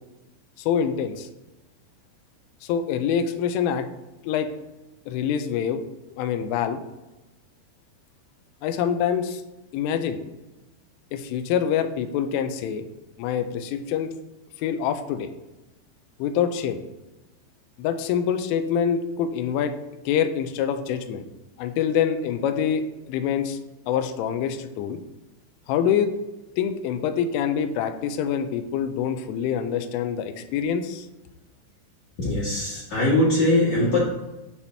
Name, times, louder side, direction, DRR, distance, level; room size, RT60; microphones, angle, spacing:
voice 1, 0.6-1.3 2.6-3.9 4.2-4.5 5.1-5.8 6.2-6.8 8.6-9.4 9.7-10.2 11.1-12.9 13.2-14.1 14.6-15.3 16.2-16.8 17.8-19.7 20.1-21.3 21.6-23.6 23.9-25.0 25.7-26.1 26.6-31.1, left 8 dB, 85° left, 7 dB, 3.1 m, -25 dB
voice 2, 32.2-34.1, left 1 dB, 60° left, -8 dB, 2.0 m, -21 dB
8.3 x 2.9 x 4.2 m, 1.0 s
omnidirectional pair, 5.7 m